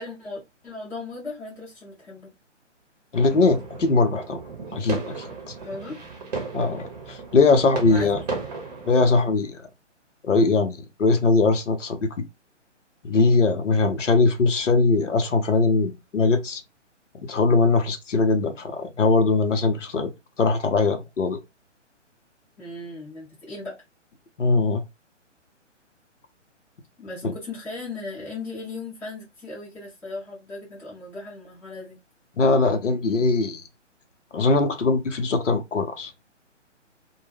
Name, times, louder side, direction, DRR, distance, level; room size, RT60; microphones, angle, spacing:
voice 1, 0.0-2.3 5.6-6.0 7.9-8.2 22.6-23.8 27.0-32.0, left 3 dB, 5° left, 0.7 m, -37 dB
voice 2, 3.1-4.4 4.7-5.5 6.5-8.2 8.9-9.6 10.2-12.1 13.0-16.6 17.1-20.1 20.4-21.4 24.4-24.8 27.2-27.3 32.4-33.6 34.3-36.1, left 3 dB, 75° left, 0.7 m, -21 dB
sound 1, 3.1-9.1, right 4 dB, 35° right, 0.8 m, -35 dB
2.2 x 2.1 x 3.3 m
figure-of-eight pair, 135°, 37 cm